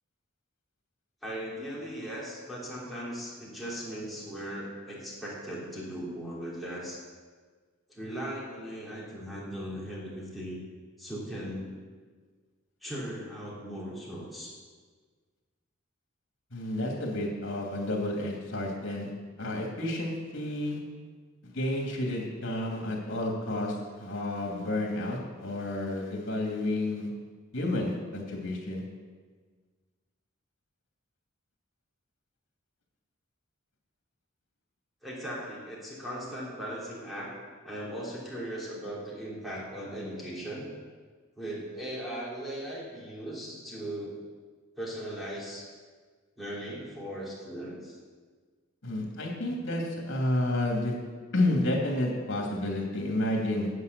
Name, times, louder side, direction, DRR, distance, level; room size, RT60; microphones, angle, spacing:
voice 1, 1.2-7.0 7.9-10.6 11.0-11.7 12.8-14.5 35.0-37.3 37.6-40.7 41.4-44.2 44.8-45.6 46.4-48.0, equal, ahead, -7 dB, 3.3 m, -38 dB
voice 2, 16.5-19.1 19.4-20.8 21.4-27.1 27.5-28.8 48.8-51.0 51.3-53.7, left 1 dB, 60° left, 0 dB, 2.7 m, -30 dB
9.6 x 8.5 x 6.8 m, 1.5 s
head